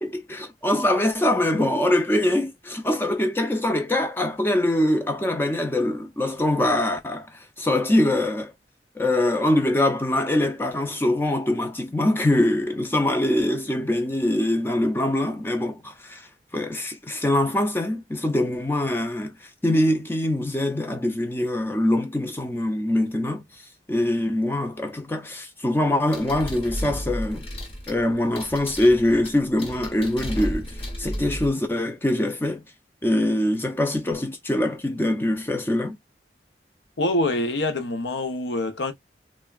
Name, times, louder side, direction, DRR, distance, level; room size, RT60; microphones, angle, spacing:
voice 1, 0.0-8.5 9.0-23.6 23.9-27.5 27.9-32.6 33.0-36.0, left 1 dB, 10° left, 0.4 m, -23 dB
sound 1, 26.1-31.5, equal, 30° left, 0.8 m, -33 dB
voice 2, 37.0-38.9, left 1 dB, 85° left, 0.7 m, -25 dB
3.3 x 2.1 x 2.3 m
head